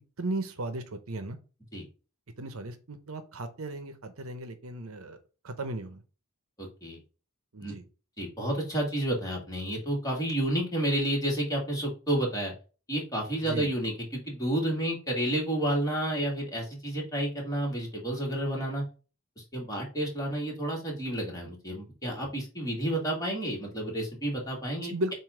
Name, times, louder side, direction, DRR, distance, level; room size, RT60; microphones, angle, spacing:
voice 1, 0.2-1.4 2.4-5.2 5.4-6.0 7.5-7.8 13.4-13.7 24.8-25.1, right 2 dB, 70° right, 9 dB, 0.9 m, -36 dB
voice 2, 6.6-7.0 7.6-7.7 8.2-12.5 12.9-18.8 19.4-25.1, right 1 dB, 15° left, -1 dB, 2.1 m, -30 dB
7.6 x 2.7 x 5.0 m, 0.34 s
head